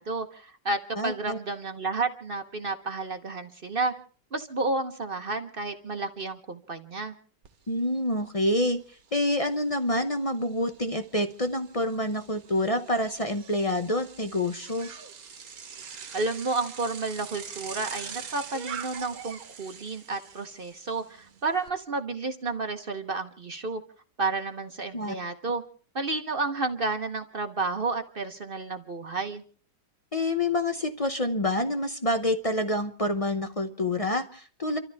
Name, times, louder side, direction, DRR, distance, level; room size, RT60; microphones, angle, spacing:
voice 1, 0.0-3.9 4.3-7.1 16.1-23.8 24.2-25.6 25.9-29.4, right 3 dB, 40° right, 7 dB, 1.0 m, -31 dB
voice 2, 0.9-1.4 7.7-8.8 9.1-14.9 24.9-25.1 30.1-34.8, left 1 dB, 40° left, 8 dB, 0.5 m, -27 dB
Bicycle, 7.4-7.5 7.9-21.7, right 6 dB, 55° right, 1.6 m, -44 dB
29.5 x 13.5 x 3.4 m, 0.41 s
omnidirectional pair, 1.9 m